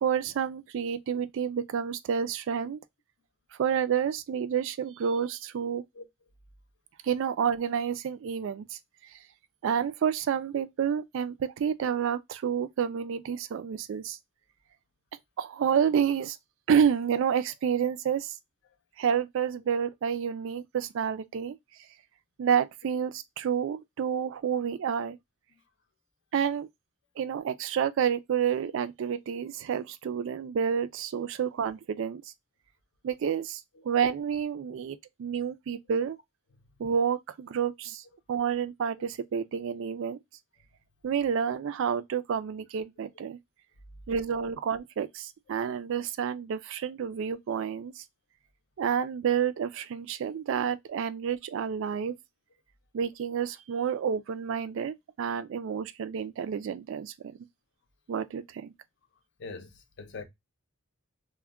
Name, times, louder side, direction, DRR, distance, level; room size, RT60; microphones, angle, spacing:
voice 1, 0.0-2.8 3.6-5.8 7.0-8.8 9.6-14.2 15.4-16.4 16.7-18.4 19.0-21.6 22.4-25.2 26.3-26.7 27.2-32.2 33.0-36.2 36.8-38.0 38.3-40.2 41.0-43.4 44.1-48.0 48.8-52.1 52.9-57.1 58.1-58.7, right 7 dB, 60° right, 0.3 m, -29 dB
voice 2, 59.4-60.2, left 4 dB, 55° left, 0.5 m, -43 dB
2.2 x 2.1 x 3.4 m
head